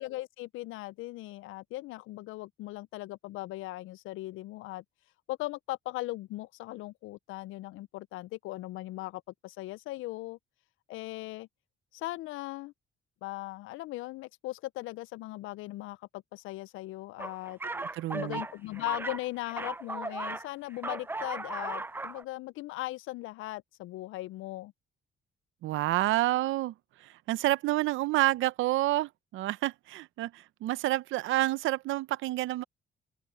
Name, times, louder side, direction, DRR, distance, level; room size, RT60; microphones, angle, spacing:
voice 1, 0.0-4.8 5.3-10.4 10.9-11.5 11.9-12.7 13.2-17.6 18.1-24.7, left 18 dB, 85° left, 0.4 m, -39 dB
sound 1, 17.2-20.5 20.7-22.2, right 2 dB, 10° right, 0.4 m, -37 dB
voice 2, 17.7-18.4 25.6-32.6, right 16 dB, 85° right, 0.6 m, -29 dB
open air
cardioid pair, 90°, 20 cm